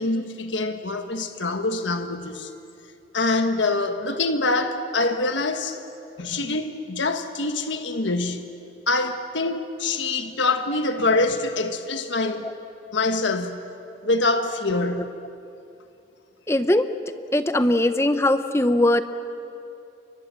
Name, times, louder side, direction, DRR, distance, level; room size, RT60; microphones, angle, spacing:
voice 1, 0.0-2.5 3.1-5.8 6.2-8.4 8.9-12.5 12.9-13.6 14.0-15.1, left 2 dB, 85° left, 1.4 m, -25 dB
voice 2, 16.5-16.9 17.3-19.0, left 1 dB, 15° left, 0.8 m, -20 dB
29.5 x 24.0 x 7.5 m
head